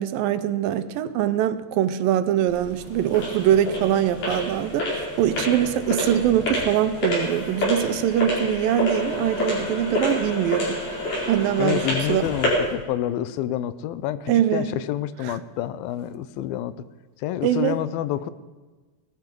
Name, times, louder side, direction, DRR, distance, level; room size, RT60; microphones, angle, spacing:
voice 1, 0.0-10.8 11.3-11.8 12.1-12.3 14.3-14.7 15.2-15.3 17.4-17.8, right 11 dB, 80° right, 12 dB, 2.4 m, -23 dB
sound 1, 2.5-12.7, left 1 dB, 60° left, 6.4 m, -28 dB
voice 2, 11.6-16.8 17.2-18.3, left 12 dB, 85° left, 15 dB, 2.5 m, -28 dB
19.0 x 13.0 x 5.3 m, 1.3 s
omnidirectional pair, 4.2 m